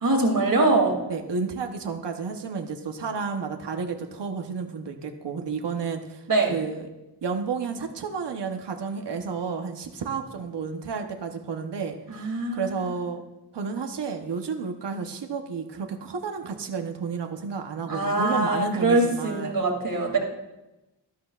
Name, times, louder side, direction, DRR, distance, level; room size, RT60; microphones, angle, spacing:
voice 1, 0.0-1.0 6.3-6.5 12.1-12.8 17.9-20.2, right 2 dB, 55° right, 0 dB, 2.8 m, -23 dB
voice 2, 1.1-6.9 7.2-13.2 13.5-19.6, right 5 dB, 75° right, 4 dB, 1.0 m, -31 dB
13.0 x 12.5 x 2.4 m, 0.98 s
wide cardioid pair, 95°, 41 cm